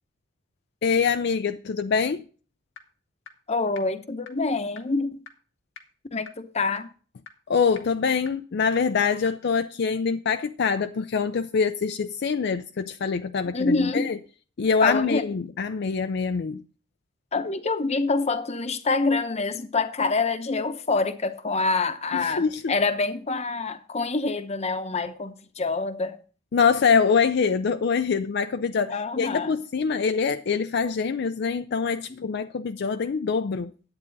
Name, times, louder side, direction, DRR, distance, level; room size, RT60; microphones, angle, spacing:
voice 1, 0.8-2.2 7.5-14.2 14.6-16.6 22.1-22.7 26.5-33.7, left 5 dB, 60° left, 0.4 m, -24 dB
sound 1, 2.8-2.9 3.3-3.4 3.8-3.9 4.3-4.4 4.8-4.9 5.3-5.4 5.8-5.9 6.3-6.4 6.8-6.9 7.3-7.4 7.8-7.9 8.3-8.4 8.8-8.9 9.3-9.4, left 6 dB, 90° left, 1.5 m, -42 dB
voice 2, 3.5-5.2 6.1-6.9 13.5-14.1 14.8-15.3 17.3-26.2 26.9-27.0 28.9-29.6 32.1-32.3, left 3 dB, 35° left, 0.8 m, -26 dB
11.0 x 8.7 x 4.0 m
head